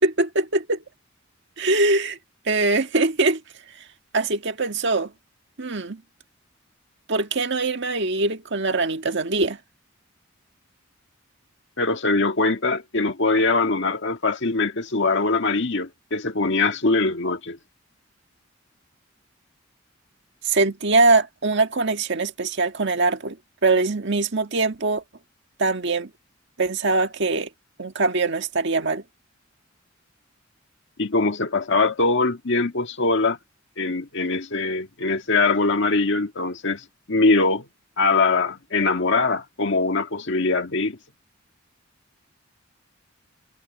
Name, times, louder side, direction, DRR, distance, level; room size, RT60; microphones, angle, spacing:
voice 1, 0.0-0.8 1.6-2.2 2.5-3.4 4.1-5.1 5.6-6.0 7.1-9.6 20.4-23.4 23.6-25.0 25.6-26.1 26.6-27.5 27.8-29.0, right 3 dB, 60° right, 1.7 m, -22 dB
voice 2, 11.8-17.6 31.0-33.4 33.8-37.7 38.0-41.0, left 3 dB, 65° left, 1.8 m, -22 dB
head